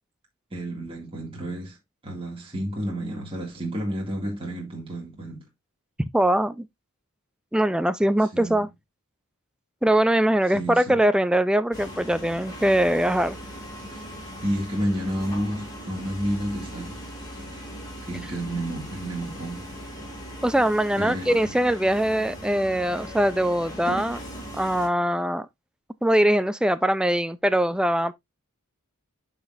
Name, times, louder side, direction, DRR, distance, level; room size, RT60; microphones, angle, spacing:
voice 1, 0.5-1.8 2.0-5.5 8.3-8.6 10.5-11.0 13.9-14.1 14.4-17.0 18.1-19.7 21.0-21.5, equal, 25° right, 2.0 m, -31 dB
voice 2, 6.0-6.7 7.5-8.7 9.8-13.4 20.4-24.2 24.6-25.5 26.0-28.1, right 1 dB, 5° right, 0.3 m, -22 dB
sound 1, 11.7-24.9, equal, 20° left, 2.3 m, -39 dB
12.0 x 4.1 x 2.4 m
head